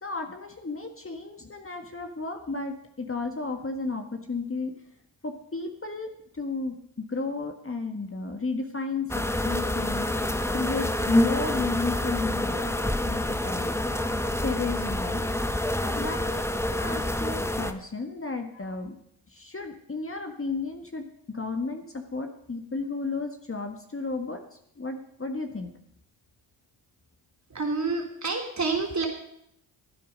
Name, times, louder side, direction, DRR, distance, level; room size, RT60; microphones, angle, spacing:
voice 1, 0.0-4.7 5.2-10.1 10.5-12.8 13.0-13.7 14.4-15.2 15.8-19.0 19.3-24.4 24.8-25.7, left 3 dB, 25° left, 4 dB, 1.6 m, -33 dB
sound 1, 9.1-17.7, left 1 dB, 5° left, 1.0 m, -27 dB
voice 2, 27.5-29.1, right 4 dB, 35° right, 1 dB, 3.7 m, -28 dB
15.5 x 9.4 x 5.4 m, 0.73 s
hypercardioid pair, 45°, 49 cm